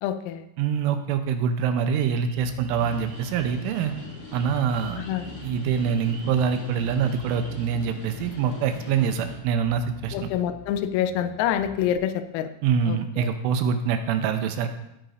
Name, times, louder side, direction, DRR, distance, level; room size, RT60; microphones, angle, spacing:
voice 1, 0.0-0.4 5.0-5.3 10.1-12.5 12.9-13.3, left 10 dB, 85° left, 11 dB, 3.3 m, -27 dB
voice 2, 0.6-3.9 4.3-5.0 5.4-10.3 12.6-14.7, right 7 dB, 85° right, 7 dB, 3.1 m, -25 dB
sound 1, 1.8-7.5, right 3 dB, 55° right, 3.3 m, -50 dB
Bass guitar, 2.4-12.0, left 2 dB, 70° left, 4.5 m, -46 dB
sound 2, 2.8-9.4, left 3 dB, 45° left, 3.2 m, -41 dB
17.0 x 9.1 x 2.7 m, 0.85 s
omnidirectional pair, 5.9 m